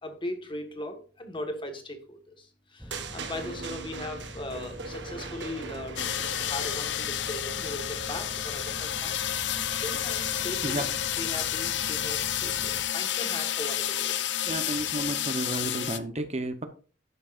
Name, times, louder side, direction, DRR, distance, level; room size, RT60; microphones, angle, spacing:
voice 1, 0.0-6.0 6.4-9.2 9.8-10.9 11.2-14.2, left 1 dB, 25° left, 6 dB, 1.6 m, -38 dB
sound 1, 2.8-12.9, equal, 5° right, 0.7 m, -44 dB
sound 2, 2.9-7.2, right 4 dB, 70° right, 1.5 m, -40 dB
sound 3, 6.0-16.0, left 10 dB, 70° left, 0.7 m, -30 dB
voice 2, 14.4-16.7, right 1 dB, 35° right, 8 dB, 0.9 m, -32 dB
11.5 x 9.4 x 2.6 m, 0.37 s
head